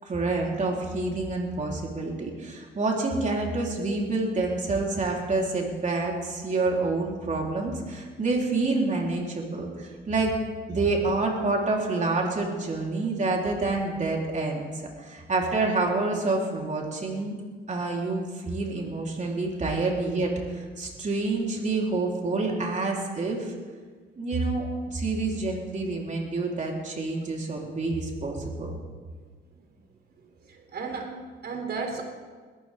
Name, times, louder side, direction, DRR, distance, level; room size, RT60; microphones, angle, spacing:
voice 1, 0.0-10.3 10.7-14.7 15.0-17.3 17.7-23.5 24.2-28.8, right 3 dB, 40° right, -1 dB, 3.9 m, -28 dB
voice 2, 30.4-32.0, right 4 dB, 55° right, 3 dB, 3.4 m, -33 dB
21.0 x 14.5 x 3.7 m, 1.5 s
cardioid pair, 90°, 20 cm